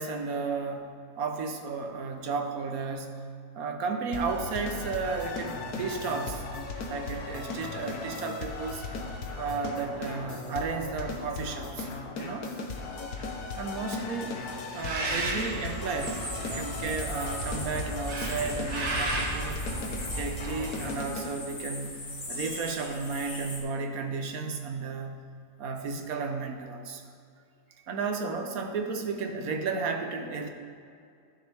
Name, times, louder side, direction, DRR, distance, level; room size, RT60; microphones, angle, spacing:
voice 1, 0.0-3.3 3.5-6.5 6.9-8.8 9.4-11.9 12.2-12.5 13.6-14.4 14.7-19.6 20.2-25.2 25.6-27.0 27.9-30.5, right 4 dB, 75° right, 5 dB, 1.3 m, -33 dB
sound 1, 4.1-21.3, left 3 dB, 80° left, 1.5 m, -37 dB
Bird, 14.7-21.1, right 1 dB, 90° right, 1.8 m, -34 dB
sound 2, 16.0-23.6, left 2 dB, 45° left, 1.8 m, -41 dB
14.5 x 6.6 x 3.4 m, 2.4 s
omnidirectional pair, 1.6 m